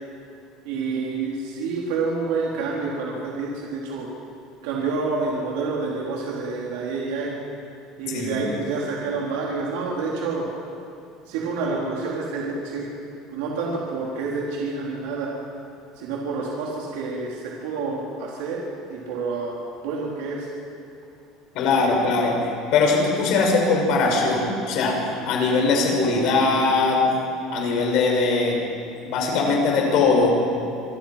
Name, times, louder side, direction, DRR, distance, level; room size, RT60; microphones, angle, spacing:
voice 1, 0.6-4.1 4.6-7.3 8.0-10.4 11.3-12.9 13.3-15.3 16.0-18.6 18.9-19.6 19.8-20.5, right 4 dB, 80° right, -4 dB, 4.1 m, -28 dB
voice 2, 8.1-8.4 21.5-27.0 27.5-28.6 29.0-30.3, left 3 dB, 50° left, 0 dB, 6.4 m, -21 dB
27.0 x 24.0 x 6.0 m, 2.6 s
cardioid pair, 170°, 0 cm